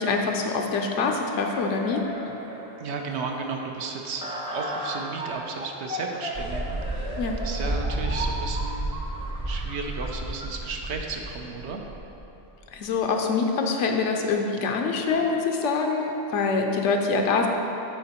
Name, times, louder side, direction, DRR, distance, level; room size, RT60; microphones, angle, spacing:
voice 1, 0.0-2.4 7.2-7.4 12.7-17.5, left 4 dB, 85° left, 2 dB, 0.9 m, -25 dB
sound 1, 1.3-10.5, right 1 dB, 5° right, 0.5 m, -37 dB
voice 2, 2.8-7.2 7.4-8.9 9.5-11.8, right 4 dB, 75° right, 2 dB, 0.9 m, -34 dB
sound 2, 6.3-13.0, right 1 dB, 35° right, 0.8 m, -32 dB
8.7 x 3.9 x 4.2 m, 3.0 s
omnidirectional pair, 1.2 m